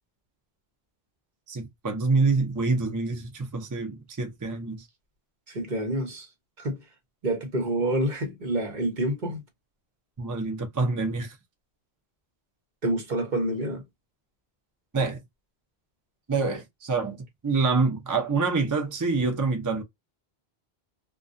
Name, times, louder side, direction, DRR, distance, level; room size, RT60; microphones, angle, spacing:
voice 1, 1.5-4.8 10.2-11.4 14.9-15.2 16.3-17.2 17.4-19.8, right 4 dB, 25° right, 0.4 m, -26 dB
voice 2, 5.5-6.3 6.6-6.8 7.2-9.4 12.8-13.8, right 1 dB, 50° right, 1.0 m, -28 dB
2.2 x 2.2 x 2.5 m
omnidirectional pair, 1.1 m